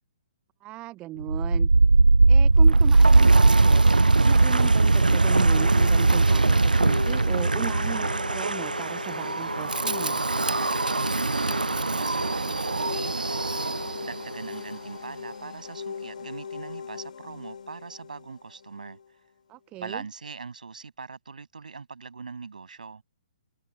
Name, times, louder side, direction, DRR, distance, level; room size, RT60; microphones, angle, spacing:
voice 1, 0.6-1.7 2.3-10.2 19.5-20.1, right 17 dB, 25° right, 0.7 m, -37 dB
Wind, 1.2-14.2, right 3 dB, 90° right, 0.3 m, -20 dB
sound 1, 4.4-19.1, left 6 dB, 65° left, 5.2 m, -39 dB
voice 2, 11.6-13.5 14.0-19.0 19.8-23.0, right 5 dB, 70° right, 7.8 m, -41 dB
figure-of-eight pair, 125°, 4 cm